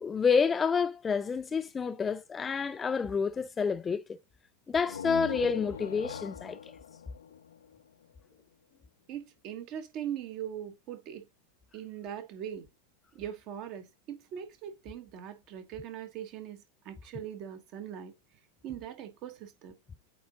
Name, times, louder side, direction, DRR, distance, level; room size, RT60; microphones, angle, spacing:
voice 1, 0.0-4.2 4.7-6.6, left 5 dB, 20° left, 0.3 m, -29 dB
sound 1, 4.7-8.4, left 8 dB, 65° left, 0.5 m, -40 dB
voice 2, 9.1-11.3 11.7-12.7 13.1-18.1 18.6-19.7, right 9 dB, 40° right, 1.4 m, -41 dB
8.5 x 3.8 x 3.7 m
figure-of-eight pair, 90°, 0 cm